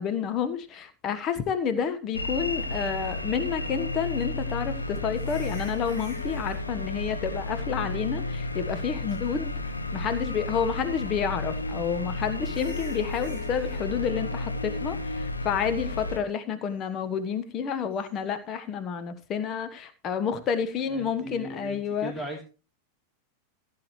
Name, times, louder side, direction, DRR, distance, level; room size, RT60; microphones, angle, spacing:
voice 1, 0.0-22.1, left 7 dB, 30° left, 10 dB, 1.2 m, -30 dB
sound 1, 2.1-16.2, left 2 dB, 85° left, 1.1 m, -32 dB
sound 2, 5.1-6.6 8.2-8.8 9.1-9.2 9.8-10.4 11.7-11.8 12.4-13.9 17.9-18.1, left 2 dB, 55° left, 5.0 m, -49 dB
voice 2, 20.9-22.4, equal, 10° left, -1 dB, 2.9 m, -37 dB
15.5 x 8.7 x 3.2 m, 0.34 s
figure-of-eight pair, 90°, 0 cm